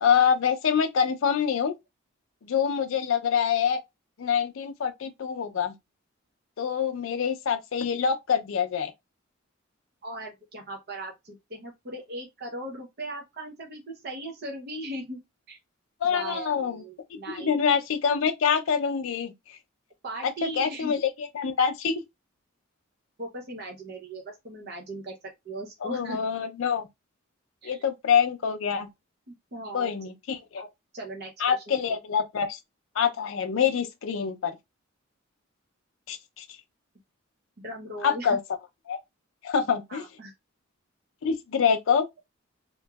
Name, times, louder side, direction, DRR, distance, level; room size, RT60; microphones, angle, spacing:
voice 1, 0.0-1.7 2.4-3.8 4.2-5.7 6.6-8.9 16.0-16.8 17.1-19.6 20.2-22.0 25.8-26.9 27.6-28.9 29.7-30.6 31.4-32.6 33.0-34.5 36.1-36.6 38.0-38.4 38.9-39.0 39.4-40.0 41.2-42.0, left 7 dB, 65° left, 0.4 m, -26 dB
voice 2, 10.0-15.2 15.5-15.6 16.1-17.6 20.0-20.9 23.2-26.2 27.6-27.8 29.3-30.1 30.6-30.7 30.9-31.8 37.6-38.4 39.9-40.3, right 2 dB, 50° right, 0.7 m, -38 dB
2.9 x 2.6 x 2.2 m
head